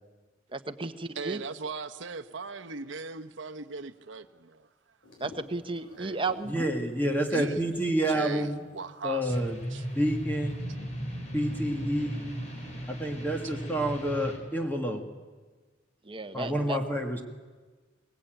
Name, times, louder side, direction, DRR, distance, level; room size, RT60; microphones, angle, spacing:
voice 1, 0.5-0.9 1.2-1.4 5.2-6.5 16.0-16.8, right 3 dB, 30° right, 1.1 m, -33 dB
voice 2, 1.2-4.7 6.0-6.2 7.3-7.7 8.1-9.4 9.7-9.8, right 4 dB, 80° right, 0.9 m, -38 dB
sound 1, 5.0-8.5 8.8-8.9 9.1-10.5, left 2 dB, 80° left, 7.9 m, -53 dB
voice 3, 6.5-8.6 9.0-9.6 9.9-10.5 11.3-12.4 12.9-15.0 16.3-17.2, right 1 dB, 10° left, 1.9 m, -29 dB
sound 2, 9.3-14.4, equal, 40° left, 4.3 m, -36 dB
22.5 x 20.0 x 9.1 m
head